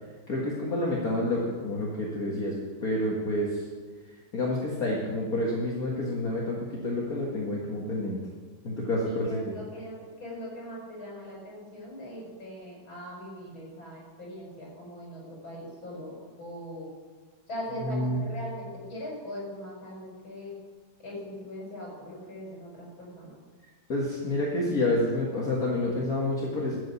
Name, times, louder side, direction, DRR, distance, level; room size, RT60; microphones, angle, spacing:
voice 1, 0.3-3.7 4.3-8.2 8.6-9.5 17.8-18.2 23.9-26.8, left 1 dB, 45° left, -3 dB, 2.1 m, -29 dB
voice 2, 9.0-16.9 17.5-20.5 21.0-23.4, left 1 dB, 75° left, -4 dB, 6.3 m, -40 dB
13.0 x 7.6 x 8.4 m, 1.4 s
omnidirectional pair, 2.2 m